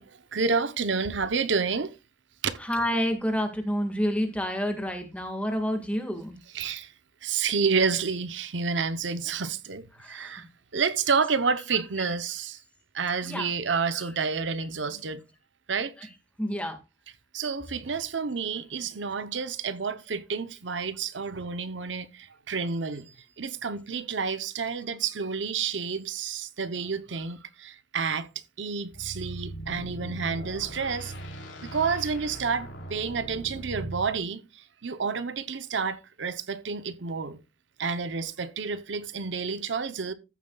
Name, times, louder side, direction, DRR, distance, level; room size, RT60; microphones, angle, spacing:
voice 1, 0.0-1.9 2.4-2.6 6.5-6.9 7.2-10.5 10.7-12.6 12.9-15.2 15.7-15.9 17.3-28.3 28.6-31.1 31.6-37.4 37.8-40.1, right 5 dB, 75° right, 0.8 m, -29 dB
voice 2, 2.6-6.4 10.0-10.4 13.2-13.5 13.9-14.0 16.4-16.8, equal, 5° left, 1.7 m, -29 dB
sound 1, 28.9-34.2, right 2 dB, 85° left, 3.2 m, -40 dB
14.5 x 7.2 x 2.3 m
head